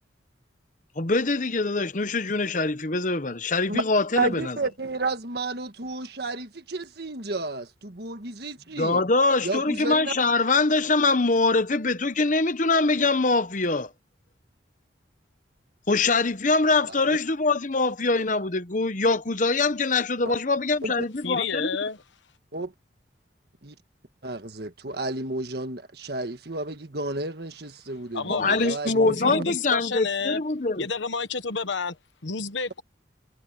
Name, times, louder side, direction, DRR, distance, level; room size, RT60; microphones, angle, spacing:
voice 1, 1.0-4.6 8.8-13.9 15.9-21.7 28.3-30.9, left 3 dB, 40° left, 1.0 m, -23 dB
voice 2, 4.1-9.0 9.4-10.1 20.8-20.9 22.5-22.7 23.6-23.7 24.2-29.4, right 2 dB, 55° right, 1.6 m, -31 dB
voice 3, 21.2-22.0 28.1-30.4 30.8-32.8, left 5 dB, 75° left, 1.2 m, -30 dB
head